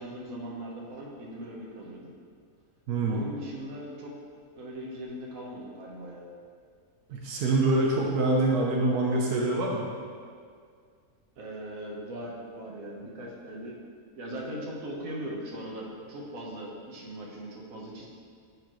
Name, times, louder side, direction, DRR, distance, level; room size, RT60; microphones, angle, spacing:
voice 1, 0.0-2.1 3.1-4.1 4.5-6.3 11.4-13.8 14.2-18.1, right 1 dB, 65° right, -2 dB, 1.5 m, -39 dB
voice 2, 2.9-3.2 7.1-9.9, right 2 dB, 90° right, -2 dB, 1.4 m, -25 dB
10.5 x 5.0 x 3.1 m, 2.1 s
omnidirectional pair, 1.6 m